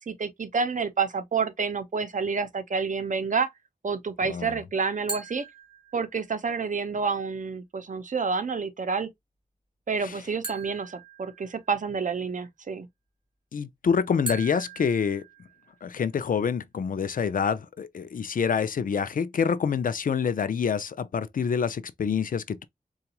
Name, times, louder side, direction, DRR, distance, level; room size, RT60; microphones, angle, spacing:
voice 1, 0.1-3.5 3.8-5.5 5.9-9.1 9.9-12.9, right 5 dB, 65° right, 0.6 m, -29 dB
voice 2, 4.2-4.6 10.0-10.2 13.5-15.2 15.8-22.6, left 6 dB, 75° left, 0.4 m, -27 dB
sound 1, 5.1-6.4 10.4-12.0 14.3-16.0, right 3 dB, 30° right, 1.5 m, -40 dB
3.8 x 2.3 x 2.8 m
wide cardioid pair, 90°, 14 cm